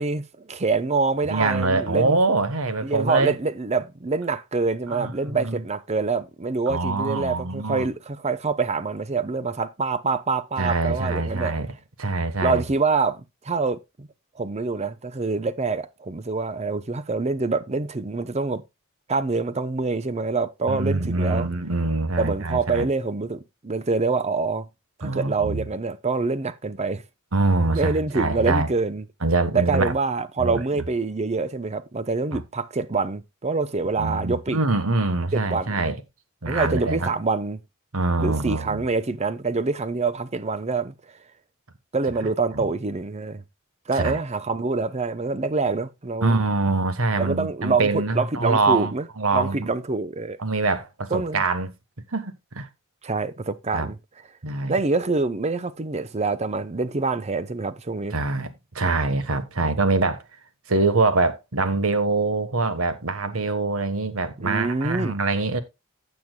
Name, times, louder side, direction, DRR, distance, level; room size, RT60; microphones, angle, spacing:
voice 1, 0.0-2.2 2.8-11.5 12.4-14.1 14.4-18.6 19.1-21.5 22.2-24.7 25.0-27.0 27.7-29.1 29.5-34.6 35.3-35.9 36.5-37.6 38.2-40.9 41.9-43.4 43.9-46.4 47.2-49.1 49.3-50.4 51.1-51.4 53.0-54.0 54.7-58.2 64.4-65.2, right 4 dB, 30° right, 0.7 m, -26 dB
voice 2, 1.3-3.3 4.9-5.6 6.7-7.8 10.6-11.7 12.0-12.6 20.7-22.9 25.0-25.6 27.3-28.7 29.2-29.9 30.4-30.8 34.0-36.0 36.4-37.1 37.9-38.8 42.5-42.7 43.9-44.2 46.2-49.7 50.4-51.7 52.1-52.7 53.7-53.9 54.4-54.8 58.1-60.2 60.7-65.6, right 3 dB, 85° right, 1.3 m, -24 dB
15.5 x 7.1 x 2.2 m
head